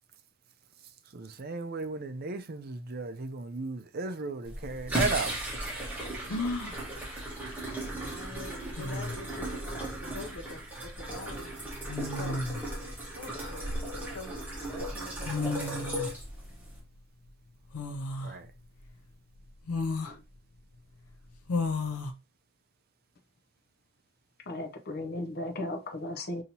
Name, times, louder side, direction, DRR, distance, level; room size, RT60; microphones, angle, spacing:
voice 1, 0.8-5.4 18.2-18.5, right 3 dB, 45° right, 0.5 m, -35 dB
sound 1, 4.4-16.8, right 1 dB, 10° right, 1.2 m, -36 dB
sound 2, 4.7-4.8 6.3-6.8 8.3-8.4 8.8-9.3 10.6-10.8 11.9-12.6 13.3-14.3 15.0-15.1 15.2-16.1 17.7-18.3 18.9-19.0 19.7-20.2 21.5-22.1, left 3 dB, 90° left, 0.6 m, -33 dB
voice 2, 7.8-11.7 12.2-12.5 13.1-14.4 14.7-15.6, left 2 dB, 70° left, 1.2 m, -46 dB
voice 3, 24.5-26.4, left 1 dB, 45° left, 0.6 m, -35 dB
5.3 x 2.8 x 2.8 m
head